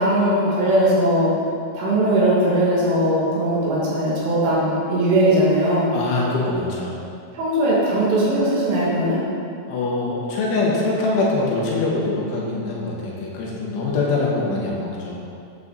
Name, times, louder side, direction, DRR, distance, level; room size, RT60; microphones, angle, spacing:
voice 1, 0.0-1.3 1.7-5.9 7.3-9.2, right 1 dB, 75° right, -7 dB, 4.8 m, -19 dB
voice 2, 5.9-6.9 9.7-15.2, left 3 dB, 75° left, -4 dB, 3.9 m, -23 dB
11.5 x 8.7 x 4.1 m, 2.5 s
omnidirectional pair, 5.8 m